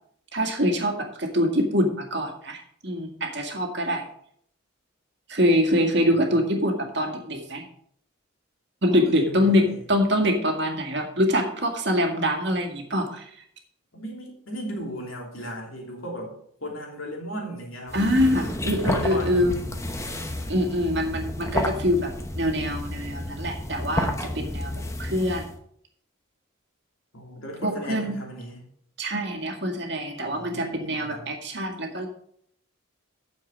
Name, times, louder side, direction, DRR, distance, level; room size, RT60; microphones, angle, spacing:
voice 1, 0.3-4.0 5.3-7.6 8.8-13.3 17.9-19.5 20.5-24.7 25.0-25.5 27.6-28.2 29.0-32.1, equal, 55° right, 3 dB, 1.9 m, -24 dB
voice 2, 6.1-6.5 8.9-9.8 13.9-16.3 16.6-18.1 18.8-19.6 27.1-28.6 30.3-31.3, equal, 75° left, 0 dB, 3.0 m, -36 dB
sound 1, 17.9-25.6, left 1 dB, 15° left, 0.8 m, -31 dB
9.5 x 7.0 x 5.2 m, 0.66 s
head